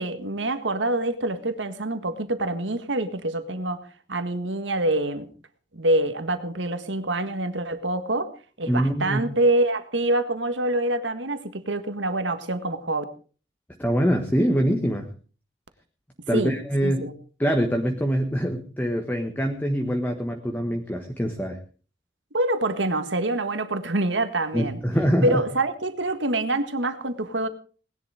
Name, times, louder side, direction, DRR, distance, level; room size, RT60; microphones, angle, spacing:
voice 1, 0.0-5.3 5.7-8.3 8.6-13.0 16.3-16.5 16.8-17.1 22.3-24.8 25.2-27.5, right 2 dB, 85° right, 9 dB, 1.8 m, -26 dB
voice 2, 8.7-9.2 13.8-15.1 16.3-17.1 17.4-21.6 24.5-25.4, equal, 10° left, 3 dB, 1.4 m, -24 dB
19.5 x 11.0 x 4.9 m, 0.39 s
head